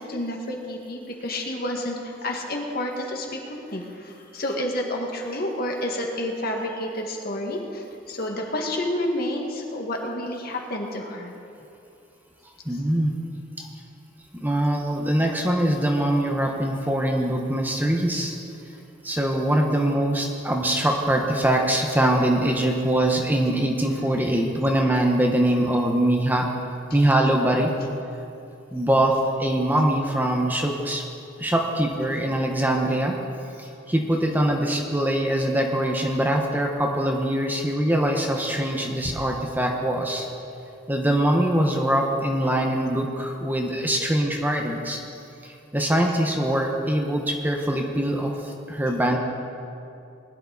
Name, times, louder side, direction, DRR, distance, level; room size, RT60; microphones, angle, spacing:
voice 1, 0.0-11.3, left 1 dB, 55° left, 1 dB, 1.8 m, -30 dB
voice 2, 12.6-13.1 13.6-13.7 14.3-18.4 19.0-26.5 26.9-27.7 28.7-31.0 31.4-33.1 33.6-40.3 40.9-45.0 45.4-49.2, right 1 dB, 10° right, 1 dB, 1.2 m, -23 dB
20.5 x 11.0 x 4.1 m, 2.7 s
head